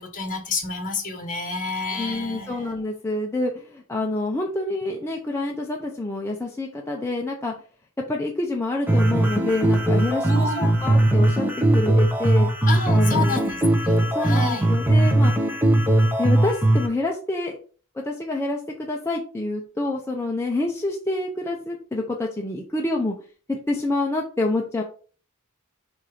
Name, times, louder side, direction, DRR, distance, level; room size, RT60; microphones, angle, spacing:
voice 1, 0.0-2.7 10.2-10.7 12.7-13.6 13.8-14.7, left 3 dB, 40° left, 3 dB, 1.6 m, -29 dB
voice 2, 1.9-7.5 8.1-11.5 11.7-12.5 12.9-13.4 14.1-15.5 16.2-17.6 17.9-23.2 23.5-24.8, left 2 dB, 10° left, 0 dB, 0.7 m, -27 dB
sound 1, 8.9-16.9, right 1 dB, 10° right, 1.0 m, -19 dB
5.0 x 4.3 x 4.9 m, 0.41 s
head